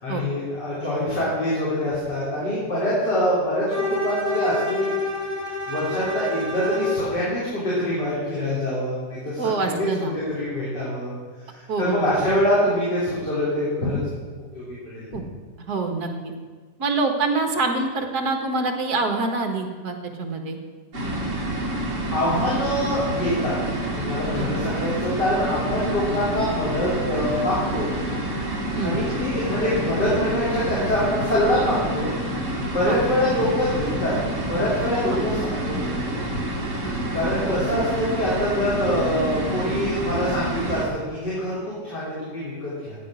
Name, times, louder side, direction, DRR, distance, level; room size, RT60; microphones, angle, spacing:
voice 1, 0.0-5.0 5.7-9.9 10.3-11.1 11.4-14.0 14.5-14.6 14.9-15.1 22.1-23.5 23.9-28.0 28.8-32.1 32.6-34.1 34.4-36.2 37.1-43.0, left 1 dB, 65° left, -8 dB, 4.1 m, -25 dB
Bowed string instrument, 3.7-7.1, left 2 dB, 20° right, 4.5 m, -28 dB
voice 2, 9.4-10.1 11.7-12.1 15.1-15.2 15.7-16.3 16.8-20.6 24.4-24.5 28.7-29.0 32.9-33.0 35.1-35.2 37.5-37.9, right 3 dB, 60° right, 4 dB, 2.1 m, -26 dB
sound 1, 20.9-40.8, right 1 dB, 40° right, 2.5 m, -28 dB
14.0 x 9.2 x 6.3 m, 1.5 s
omnidirectional pair, 1.9 m